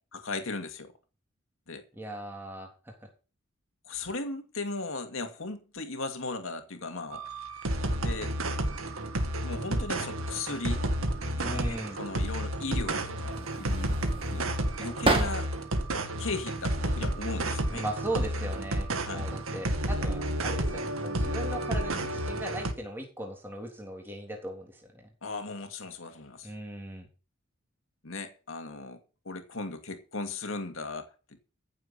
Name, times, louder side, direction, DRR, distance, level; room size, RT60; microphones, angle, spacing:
voice 1, 0.1-0.9 1.7-1.8 3.8-7.2 8.0-8.3 9.4-10.8 11.4-13.9 14.3-14.5 14.8-15.5 16.2-17.8 19.0-19.3 25.2-26.5 28.0-29.0 29.3-31.1, left 3 dB, 75° left, 2.3 m, -37 dB
voice 2, 1.9-2.9 11.4-12.0 17.7-25.1 26.4-27.1, right 1 dB, 10° right, 3.5 m, -38 dB
sound 1, 7.1-22.7, right 1 dB, 80° right, 2.0 m, -31 dB
sound 2, 13.3-15.8 16.2-17.1 18.0-18.3 18.7-19.5, right 2 dB, 25° right, 2.2 m, -32 dB
15.5 x 7.5 x 5.7 m
head